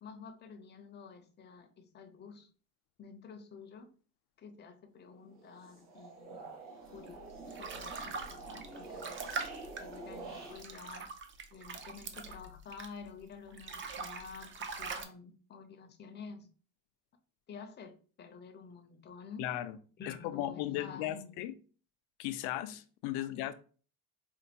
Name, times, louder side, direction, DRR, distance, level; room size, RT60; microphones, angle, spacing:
voice 1, 0.0-2.5 3.0-3.9 4.4-6.5 6.9-9.2 9.8-11.1 11.5-14.5 14.8-16.5 17.5-19.5 20.0-21.4, left 5 dB, 25° left, 0.5 m, -50 dB
sound 1, 5.3-10.5, right 3 dB, 85° right, 1.9 m, -47 dB
sound 2, 7.1-13.1 13.5-15.0, right 4 dB, 30° right, 0.5 m, -43 dB
voice 2, 19.4-19.8 20.1-21.5 22.2-23.5, left 13 dB, 80° left, 0.5 m, -36 dB
4.3 x 2.3 x 2.8 m
cardioid pair, 125°, 39 cm